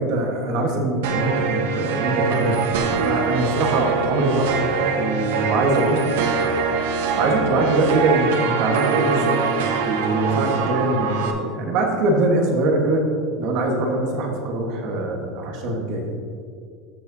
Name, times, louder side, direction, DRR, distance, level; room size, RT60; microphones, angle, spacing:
voice 1, 0.0-4.5 4.9-6.1 7.1-9.4 9.8-13.0 13.4-16.0, right 2 dB, 50° right, 1 dB, 1.3 m, -22 dB
sound 1, 1.0-11.3, right 5 dB, 80° right, 0.8 m, -23 dB
14.5 x 4.9 x 2.7 m, 2.3 s
supercardioid pair, 170°, 0 cm